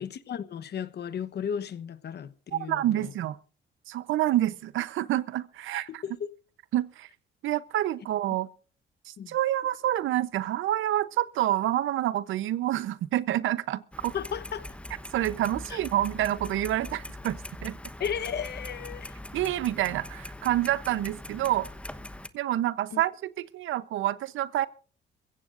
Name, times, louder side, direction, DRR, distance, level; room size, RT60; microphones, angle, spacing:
voice 1, 0.0-3.1 6.0-6.3 9.2-9.3 14.1-14.7 15.7-15.8 18.0-19.2 22.9-23.0, left 8 dB, 55° left, 1.1 m, -34 dB
voice 2, 2.5-3.4 3.9-6.0 6.7-7.1 7.4-8.5 9.1-14.1 15.1-17.8 19.3-21.7 22.3-23.1 23.5-24.7, right 13 dB, 80° right, 0.8 m, -28 dB
Clock, 13.9-22.3, left 1 dB, 5° left, 1.1 m, -42 dB
23.0 x 16.0 x 2.6 m
cardioid pair, 90°, 20 cm